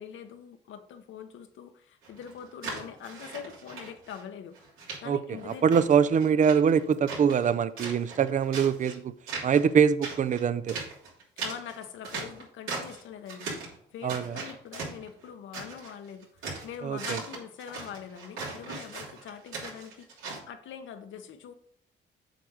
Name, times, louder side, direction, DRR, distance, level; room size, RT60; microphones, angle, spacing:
voice 1, 0.0-4.7 5.0-6.3 11.4-13.6 13.9-21.5, left 8 dB, 75° left, 0.9 m, -43 dB
sound 1, 2.0-4.2 4.5-5.0 5.4-7.5 7.8-8.9 9.3-9.7 10.0-13.0 13.3-13.8 14.1-15.9 16.2-20.4, right 4 dB, 85° right, 3.2 m, -39 dB
voice 2, 5.6-9.1 9.4-10.8 14.0-14.4 16.8-17.2, right 7 dB, 40° right, 0.5 m, -23 dB
7.6 x 3.4 x 6.3 m
cardioid pair, 90°, 20 cm